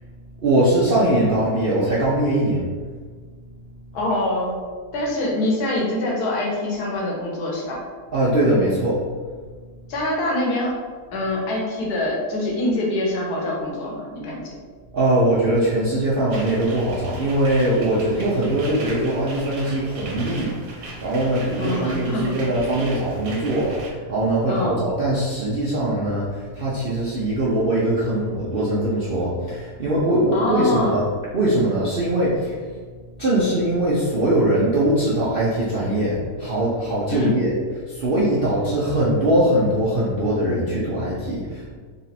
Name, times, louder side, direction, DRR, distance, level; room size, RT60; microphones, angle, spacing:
voice 1, 0.4-2.7 8.1-9.0 14.9-31.0 31.3-32.7 33.2-37.5 37.8-41.8, right 1 dB, 50° right, -7 dB, 0.7 m, -21 dB
voice 2, 3.9-4.6 4.9-7.8 9.9-10.8 11.1-14.5 21.6-22.3 22.7-22.8 24.5-24.7 30.3-30.9 37.1-37.4, left 1 dB, 80° left, -3 dB, 1.5 m, -25 dB
sound 1, 16.3-23.9, right 2 dB, 90° right, 1.3 m, -38 dB
3.9 x 2.5 x 4.2 m, 1.5 s
omnidirectional pair, 1.7 m